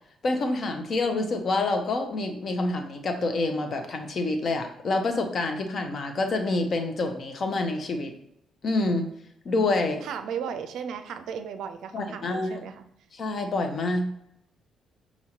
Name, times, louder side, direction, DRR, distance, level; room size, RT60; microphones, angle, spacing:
voice 1, 0.2-8.1 8.6-9.1 9.4-10.0 11.9-12.6 13.1-14.1, left 2 dB, 55° left, 5 dB, 0.7 m, -27 dB
voice 2, 10.0-12.8, right 7 dB, 70° right, 8 dB, 0.4 m, -35 dB
5.6 x 2.9 x 2.8 m, 0.76 s
hypercardioid pair, 45°, 0 cm